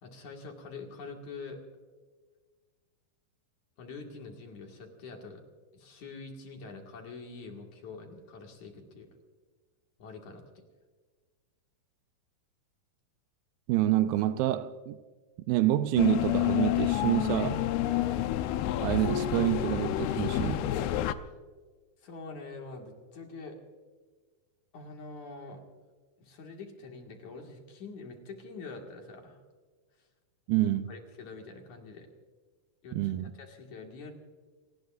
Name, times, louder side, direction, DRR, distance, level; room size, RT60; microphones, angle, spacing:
voice 1, 0.0-1.6 3.8-5.4 5.7-9.1 10.0-10.4 17.9-18.3 22.0-23.6 24.7-25.6 26.2-29.4 30.9-32.1 32.8-33.1 33.4-34.1, left 3 dB, 55° left, 3.1 m, -45 dB
voice 2, 13.7-15.0 15.5-17.6 18.8-20.7 30.5-30.9 32.9-33.3, right 14 dB, 80° right, 2.3 m, -27 dB
sound 1, 16.0-21.1, left 13 dB, 85° left, 2.7 m, -29 dB
29.5 x 19.0 x 2.6 m
omnidirectional pair, 4.4 m